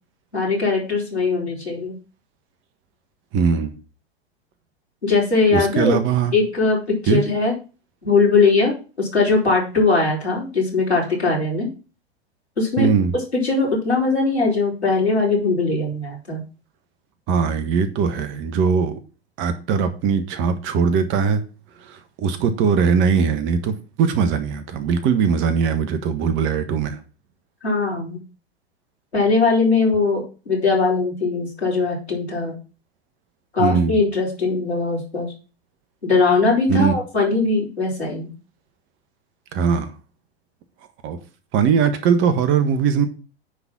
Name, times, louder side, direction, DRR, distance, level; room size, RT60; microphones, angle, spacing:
voice 1, 0.3-1.9 5.0-6.0 6.3-7.5 8.0-11.7 12.6-12.9 13.4-16.4 27.6-28.2 29.1-32.6 33.5-35.3 36.0-38.3, left 3 dB, 90° left, 4.4 m, -20 dB
voice 2, 3.3-3.8 5.5-6.3 7.1-7.2 12.8-13.1 17.3-19.0 19.4-21.4 21.8-27.0 33.6-34.0 36.7-36.9 39.5-39.9 41.0-41.2 41.5-43.1, right 6 dB, 40° right, 1.4 m, -20 dB
9.6 x 4.1 x 6.0 m
figure-of-eight pair, 95°, 32 cm